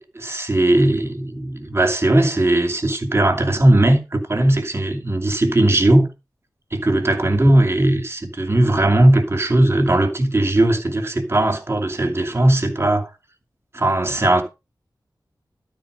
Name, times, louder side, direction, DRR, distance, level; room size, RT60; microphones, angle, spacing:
voice 1, 0.1-6.1 6.7-13.1 13.7-14.4, right 1 dB, 35° right, 2.6 m, -18 dB
12.5 x 4.5 x 6.6 m
wide cardioid pair, 100°, 8 cm